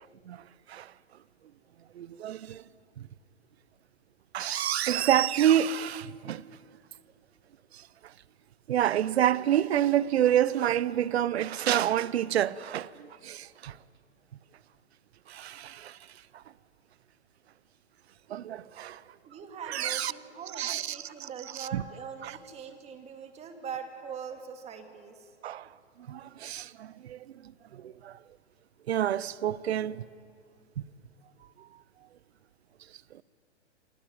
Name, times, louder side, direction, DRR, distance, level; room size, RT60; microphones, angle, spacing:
voice 1, 2.0-2.6 4.3-6.4 8.7-13.7 15.3-16.0 18.3-19.0 19.7-20.1 20.5-21.3 21.5-21.8 22.2-22.3 25.4-25.6 26.1-27.2 27.7-28.1 28.9-30.0, right 11 dB, 60° right, 0.8 m, -28 dB
voice 2, 19.3-25.3, right 6 dB, 20° right, 2.2 m, -42 dB
27.5 x 17.0 x 9.5 m
hypercardioid pair, 130°, 36 cm